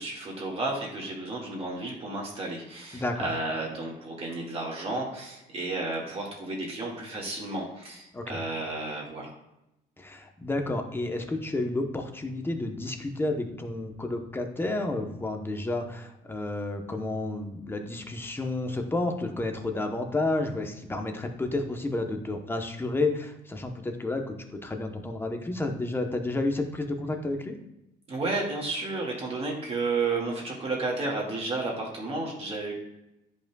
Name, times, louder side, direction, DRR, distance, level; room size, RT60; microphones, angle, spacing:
voice 1, 0.0-9.3 28.1-32.7, right 3 dB, 35° right, -2 dB, 2.0 m, -32 dB
voice 2, 2.9-3.3 8.1-8.4 10.0-27.6, left 2 dB, 15° left, 4 dB, 0.9 m, -31 dB
10.0 x 5.3 x 2.3 m, 0.89 s
cardioid pair, 110°, 17 cm